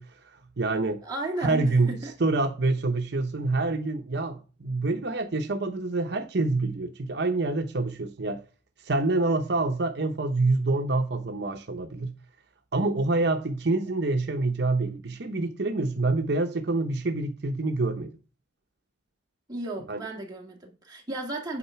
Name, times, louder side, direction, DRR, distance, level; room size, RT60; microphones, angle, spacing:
voice 1, 0.0-1.0 1.4-1.9 2.2-8.4 8.8-12.1 12.7-18.1 19.9-20.0, right 2 dB, 60° right, 0.8 m, -26 dB
voice 2, 1.0-2.2 19.5-21.6, right 2 dB, 20° right, 1.9 m, -34 dB
8.8 x 4.0 x 5.7 m
head